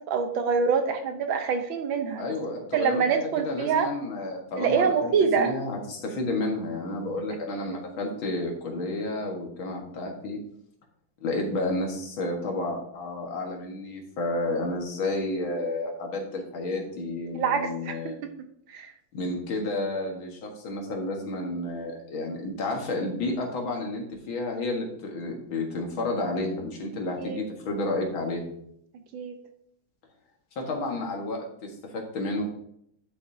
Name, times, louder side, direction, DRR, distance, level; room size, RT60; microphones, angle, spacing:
voice 1, 0.1-2.3 2.7-3.9 4.6-5.5 7.5-7.8 17.3-18.0 18.2-18.9 27.2-27.4 29.1-29.3, right 6 dB, 70° right, 6 dB, 1.6 m, -26 dB
voice 2, 2.2-3.0 3.4-10.4 11.2-18.2 19.1-28.5 30.6-32.5, left 2 dB, 70° left, 1 dB, 2.3 m, -31 dB
11.0 x 6.8 x 2.8 m, 0.70 s
omnidirectional pair, 2.3 m